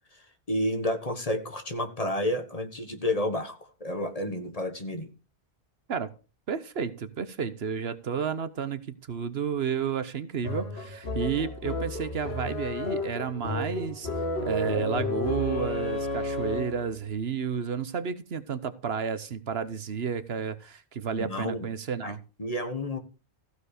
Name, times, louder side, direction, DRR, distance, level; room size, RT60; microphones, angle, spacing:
voice 1, 0.1-5.1 21.1-21.7 22.0-22.1 22.4-23.0, left 1 dB, 35° left, 7 dB, 1.5 m, -30 dB
voice 2, 6.5-14.1 14.4-22.2, right 6 dB, 65° right, 13 dB, 1.2 m, -31 dB
sound 1, 10.4-16.9, left 2 dB, 70° left, 1.9 m, -32 dB
15.0 x 5.0 x 6.6 m, 0.34 s
omnidirectional pair, 1.1 m